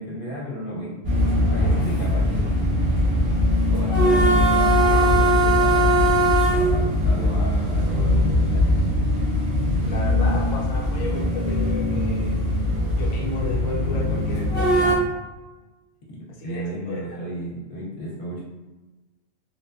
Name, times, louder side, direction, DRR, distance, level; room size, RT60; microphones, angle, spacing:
voice 1, 0.0-2.5 3.7-8.7 16.1-16.2 16.4-18.4, equal, 50° left, -5 dB, 0.7 m, -33 dB
sound 1, 1.0-14.9, equal, 35° right, 0.4 m, -20 dB
voice 2, 9.8-12.4 12.9-15.0 16.3-17.3, left 2 dB, 75° left, -3 dB, 0.3 m, -33 dB
2.5 x 2.2 x 2.3 m, 1.2 s
omnidirectional pair, 1.4 m